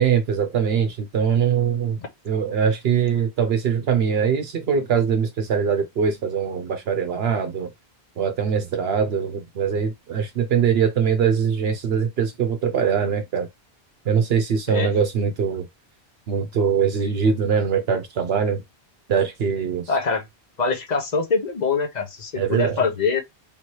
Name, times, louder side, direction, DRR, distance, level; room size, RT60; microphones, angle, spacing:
voice 1, 0.0-2.0 2.2-7.7 8.2-13.5 14.1-15.7 16.3-18.6 19.1-19.9 22.3-22.8, right 7 dB, 75° right, 0.9 m, -22 dB
voice 2, 19.9-20.2 20.6-23.2, left 4 dB, 45° left, 1.1 m, -23 dB
3.6 x 3.0 x 4.6 m
omnidirectional pair, 1.1 m